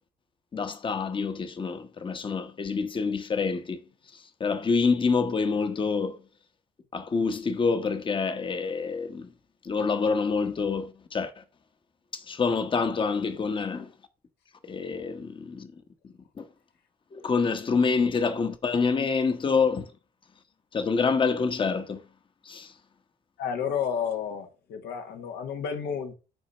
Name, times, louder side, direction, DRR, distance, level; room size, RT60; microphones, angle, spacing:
voice 1, 0.5-3.8 4.1-6.2 6.9-9.3 9.6-11.4 12.1-13.9 14.6-15.7 16.0-16.5 17.1-19.9 20.7-22.0 22.4-22.7, left 5 dB, 30° left, 1.1 m, -27 dB
voice 2, 23.4-26.1, left 7 dB, 75° left, 1.4 m, -31 dB
6.4 x 4.1 x 5.4 m
cardioid pair, 110°, 17 cm